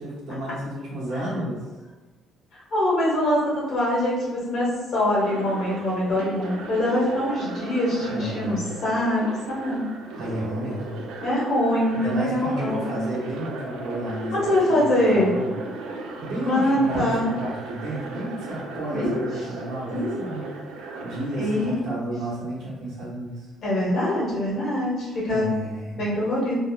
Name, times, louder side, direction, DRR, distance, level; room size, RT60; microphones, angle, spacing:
voice 1, 0.0-1.6 8.0-8.7 10.1-11.0 11.9-14.8 15.1-15.5 16.2-20.5 21.0-23.5 25.3-26.0, right 1 dB, 65° right, -5 dB, 0.9 m, -32 dB
voice 2, 2.5-9.2 9.5-9.8 11.2-12.9 14.3-15.3 16.4-17.3 18.9-19.2 19.9-20.5 21.4-21.8 23.6-25.5 26.0-26.6, left 1 dB, 45° left, -7 dB, 1.1 m, -24 dB
sound 1, 5.2-21.8, right 3 dB, 90° right, 0.3 m, -37 dB
3.0 x 2.1 x 2.2 m, 1.2 s
cardioid pair, 160°, 0 cm